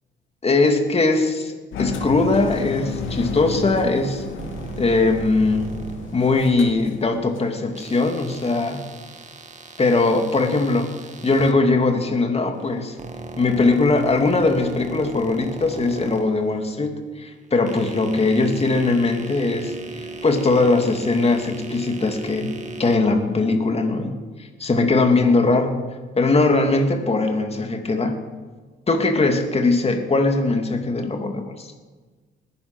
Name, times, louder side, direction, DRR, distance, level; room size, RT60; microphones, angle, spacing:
voice 1, 0.4-1.5 1.8-4.2 4.8-5.7 6.1-8.8 9.8-12.9 13.4-19.8 20.2-22.5 22.8-25.9 26.2-28.2 28.9-31.7, left 3 dB, 30° left, 4 dB, 2.6 m, -20 dB
Engine, 1.7-7.5, left 4 dB, 80° left, 2.4 m, -32 dB
sound 1, 4.4-6.7 7.7-11.5 12.5-16.9 17.4-23.0, right 3 dB, 35° right, 1.8 m, -37 dB
20.5 x 11.0 x 6.2 m, 1.4 s
cardioid pair, 90°, 20 cm